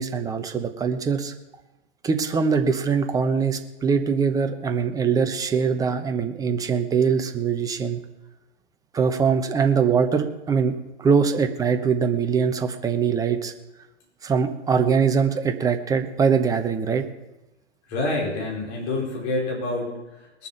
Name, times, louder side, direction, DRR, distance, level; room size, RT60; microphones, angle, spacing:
voice 1, 0.0-1.3 2.0-8.0 8.9-10.7 11.0-13.5 14.2-17.1, right 6 dB, 10° right, 6 dB, 0.9 m, -22 dB
voice 2, 17.9-20.5, left 2 dB, 40° left, -1 dB, 4.6 m, -28 dB
20.5 x 7.2 x 5.9 m, 0.99 s
hypercardioid pair, 125°, 35 cm